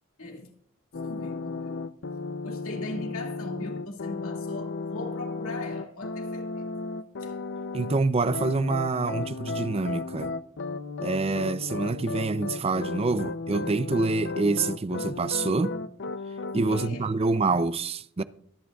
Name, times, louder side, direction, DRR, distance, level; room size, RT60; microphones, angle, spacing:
voice 1, 0.2-0.5 1.0-1.8 2.4-6.7 7.2-7.3 16.7-17.3, left 2 dB, 85° left, 2.2 m, -39 dB
sound 1, 0.9-8.0 8.3-16.9, left 3 dB, 60° left, 0.5 m, -34 dB
voice 2, 7.7-10.3 11.0-15.7 16.5-18.2, right 3 dB, 30° right, 0.5 m, -26 dB
24.5 x 8.9 x 2.3 m
head